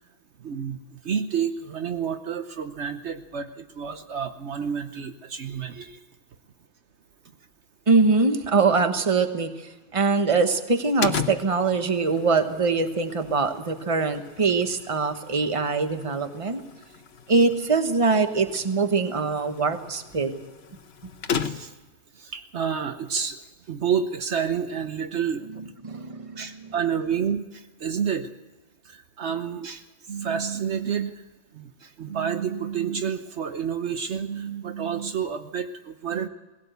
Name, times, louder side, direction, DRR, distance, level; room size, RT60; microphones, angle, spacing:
voice 1, 0.4-6.0 21.4-21.7 22.2-23.4 23.7-25.4 26.4-28.3 28.9-31.1 31.5-36.3, right 7 dB, 65° right, 8 dB, 1.2 m, -29 dB
voice 2, 7.9-9.5 9.9-16.6 17.3-20.4 25.8-26.6, right 4 dB, 30° right, 8 dB, 1.2 m, -23 dB
sound 1, 11.0-21.9, left 7 dB, 60° left, 1.2 m, -36 dB
19.0 x 17.0 x 8.1 m, 1.2 s
omnidirectional pair, 1.3 m